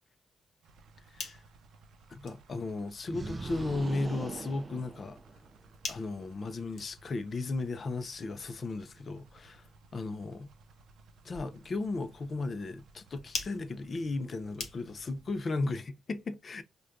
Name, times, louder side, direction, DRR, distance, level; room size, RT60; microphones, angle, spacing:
sound 1, 0.6-15.4, right 3 dB, 75° right, 0.5 m, -59 dB
sound 2, 0.8-15.2, left 4 dB, 65° left, 1.0 m, -48 dB
voice 1, 2.1-5.2 5.9-9.7 9.9-10.5 11.2-16.6, left 3 dB, 40° left, 0.5 m, -35 dB
sound 3, 3.1-5.6, right 3 dB, 25° right, 0.3 m, -41 dB
4.9 x 2.3 x 2.5 m
cardioid pair, 115°, 0 cm